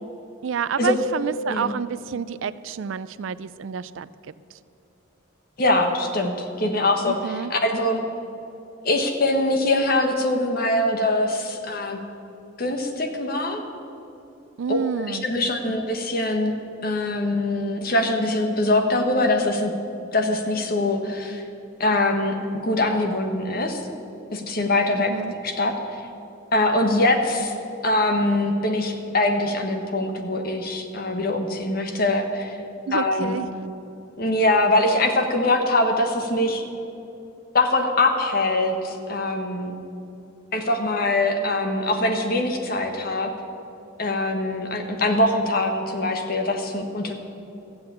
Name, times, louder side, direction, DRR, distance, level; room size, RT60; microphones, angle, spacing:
voice 1, 0.4-4.1 7.1-7.5 14.6-15.3 25.0-25.3 32.9-33.5, right 6 dB, 70° right, 17 dB, 0.4 m, -29 dB
voice 2, 5.6-8.0 8.8-12.0 12.6-13.6 14.7-16.6 16.8-19.7 20.1-21.4 21.8-22.4 22.6-23.8 24.3-25.1 25.4-26.0 26.5-27.5 27.8-32.6 32.9-33.4 34.2-36.6 37.5-39.8 40.5-43.3 44.0-47.1, left 2 dB, 45° left, 4 dB, 1.3 m, -23 dB
14.0 x 7.8 x 8.4 m, 2.8 s
head